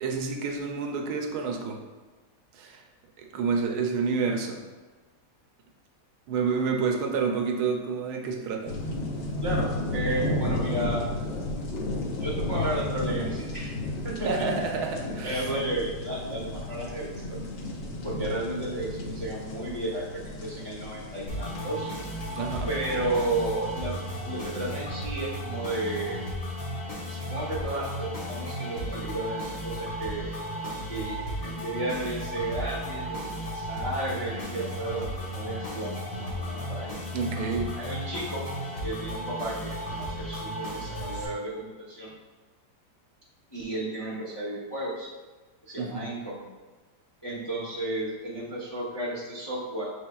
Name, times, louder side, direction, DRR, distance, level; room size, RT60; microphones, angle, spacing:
voice 1, 0.0-1.8 2.5-2.8 3.2-4.6 6.3-8.7 14.2-15.5 22.4-22.7 37.1-37.7 45.8-46.1, right 5 dB, 75° right, 2 dB, 1.1 m, -29 dB
sound 1, 8.7-24.9, left 1 dB, 85° left, 0.5 m, -33 dB
voice 2, 9.4-11.0 12.2-13.7 14.0-14.3 15.0-17.4 18.0-21.9 22.6-24.0 24.2-26.3 27.1-30.3 30.9-36.9 37.7-38.4 38.8-42.1 43.5-45.1 45.6-46.4 47.2-49.9, right 1 dB, 25° left, -5 dB, 0.5 m, -33 dB
sound 2, 21.3-41.2, equal, 55° left, 1.2 m, -35 dB
6.3 x 3.4 x 2.3 m, 1.3 s
omnidirectional pair, 1.8 m